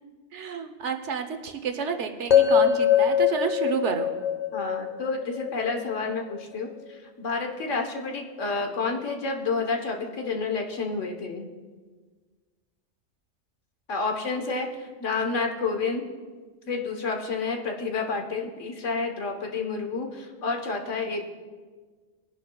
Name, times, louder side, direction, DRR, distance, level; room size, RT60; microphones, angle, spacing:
voice 1, 0.3-4.1, right 6 dB, 70° right, 7 dB, 1.2 m, -30 dB
sound 1, 2.3-6.4, left 9 dB, 35° left, 1.0 m, -23 dB
voice 2, 4.5-11.5 13.9-16.0 16.7-21.3, left 4 dB, 75° left, 3 dB, 1.5 m, -30 dB
20.5 x 10.5 x 2.3 m, 1.5 s
omnidirectional pair, 1.3 m